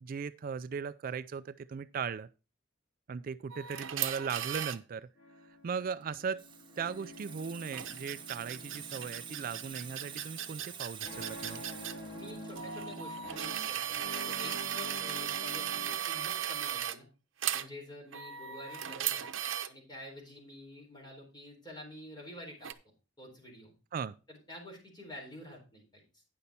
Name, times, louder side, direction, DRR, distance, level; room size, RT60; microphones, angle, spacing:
voice 1, 0.0-2.3 3.1-5.1 5.6-6.4 6.8-11.6 23.9-24.1, right 6 dB, 45° right, 0.3 m, -38 dB
sound 1, 3.5-4.8 7.7-11.9 12.6-17.0 17.4-17.7 18.1-19.7 22.6-22.7, right 10 dB, 85° right, 0.7 m, -36 dB
sound 2, 5.2-15.9, left 1 dB, 55° left, 3.0 m, -48 dB
Water tap faucet / Sink (filling or washing), 6.0-15.3 15.6-15.9, right 7 dB, 25° right, 1.0 m, -49 dB
voice 2, 12.1-17.1 17.5-19.2 19.7-22.7 23.2-23.7 24.3-26.2, left 1 dB, 20° left, 3.9 m, -49 dB
9.5 x 6.7 x 4.2 m
head